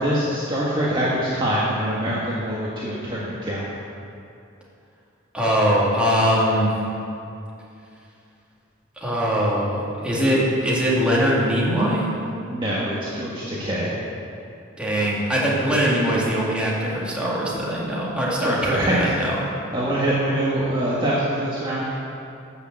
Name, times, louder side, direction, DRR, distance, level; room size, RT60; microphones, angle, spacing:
voice 1, 0.0-3.6 12.5-13.9 18.4-19.0 19.7-21.8, right 1 dB, 25° right, -7 dB, 1.6 m, -24 dB
voice 2, 5.3-6.8 9.0-12.1 14.8-19.4, equal, 5° right, -7 dB, 2.4 m, -21 dB
12.0 x 6.6 x 7.6 m, 2.6 s
head